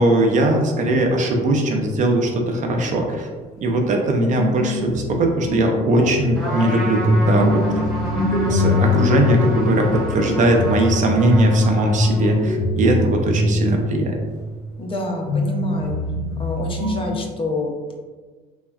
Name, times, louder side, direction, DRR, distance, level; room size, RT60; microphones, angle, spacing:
voice 1, 0.0-3.3 3.6-7.6 8.2-14.2, right 1 dB, 50° right, 2 dB, 0.5 m, -20 dB
sound 1, 4.3-14.7 15.3-17.2, left 1 dB, 80° left, 0.7 m, -23 dB
Trumpet, 6.3-12.5, equal, ahead, 1.3 m, -30 dB
voice 2, 7.2-7.9 14.8-16.0 16.4-17.9, left 2 dB, 30° left, 1 dB, 0.5 m, -28 dB
3.5 x 2.1 x 2.3 m, 1.4 s
cardioid pair, 110°, 17 cm